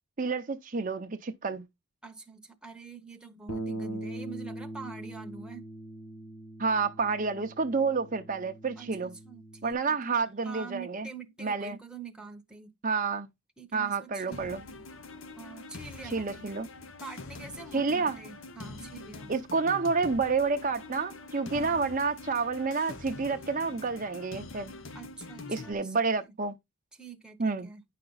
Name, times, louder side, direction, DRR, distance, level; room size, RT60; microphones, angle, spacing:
voice 1, 0.2-1.6 6.6-9.1 9.6-11.1 11.4-11.8 12.8-13.3 13.7-14.6 16.0-16.7 17.7-18.2 19.3-24.7 25.5-26.5 27.4-27.7, right 4 dB, 35° right, 0.6 m, -29 dB
voice 2, 2.0-5.7 8.8-10.0 10.4-12.7 13.6-14.8 15.4-16.5 17.0-19.3 21.5-21.8 24.9-26.3 27.0-27.8, right 5 dB, 5° right, 0.9 m, -46 dB
Bass guitar, 3.5-9.7, right 1 dB, 85° left, 1.4 m, -41 dB
sound 1, 14.3-25.7, left 3 dB, 60° left, 0.9 m, -45 dB
10.0 x 5.8 x 4.0 m
head